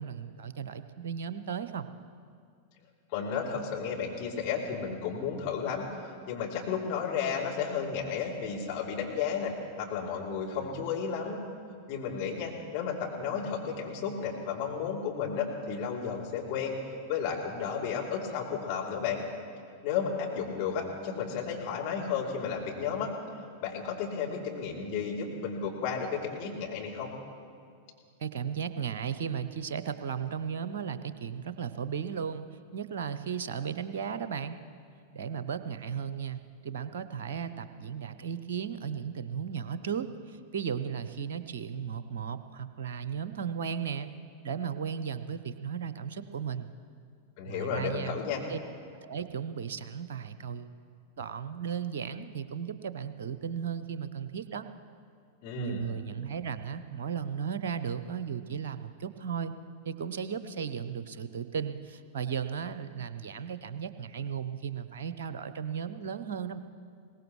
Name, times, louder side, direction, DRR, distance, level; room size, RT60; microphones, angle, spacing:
voice 1, 0.0-1.9 28.2-32.4 32.7-34.6 35.1-44.1 44.4-46.7 47.5-48.2 48.5-48.6 49.0-50.7 51.2-54.6 55.6-59.5 59.9-66.6, right 7 dB, 60° right, 12 dB, 0.7 m, -35 dB
voice 2, 3.1-11.4 11.9-16.8 17.1-19.2 19.8-23.1 23.6-27.1 47.4-48.5 55.4-55.8, left 6 dB, 50° left, -2 dB, 3.2 m, -33 dB
22.0 x 19.0 x 3.2 m, 2.3 s
figure-of-eight pair, 95°, 0 cm